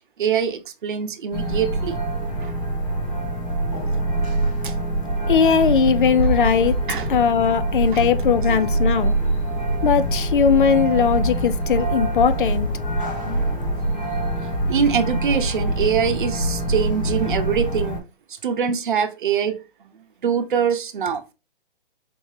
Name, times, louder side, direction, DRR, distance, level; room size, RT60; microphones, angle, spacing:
voice 1, 0.2-2.0 2.4-2.5 4.6-4.7 6.9-7.1 7.9-8.1 8.5-8.6 13.1-14.1 14.7-18.0 18.3-19.9 20.2-21.2, right 7 dB, 60° right, 0.8 m, -24 dB
sound 1, 1.3-18.0, right 1 dB, 15° left, 0.9 m, -24 dB
voice 2, 5.3-6.8 7.1-9.1 9.8-12.7, left 7 dB, 60° left, 0.5 m, -19 dB
4.4 x 2.8 x 3.1 m
hypercardioid pair, 160°, 29 cm